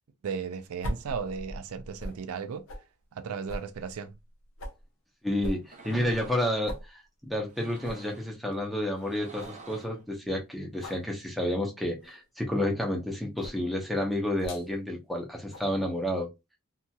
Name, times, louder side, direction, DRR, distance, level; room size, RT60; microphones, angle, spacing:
voice 1, 0.2-2.7 3.1-4.1, right 6 dB, 90° right, 0.4 m, -35 dB
sound 1, 0.8-2.2 2.7-2.9 3.5-4.8 5.4-6.4 6.7-6.9 7.3-7.4 7.8-8.0 8.5-8.6 9.0-9.1 9.4-9.6 10.8-11.0 12.0-12.2 13.4-13.6 14.4-14.7 15.5-15.7, equal, 65° left, 0.7 m, -39 dB
voice 2, 5.2-16.3, left 1 dB, ahead, 0.8 m, -30 dB
sound 2, 5.6-6.6 7.5-8.3 9.0-10.0, right 3 dB, 35° right, 0.6 m, -49 dB
2.8 x 2.7 x 2.3 m
head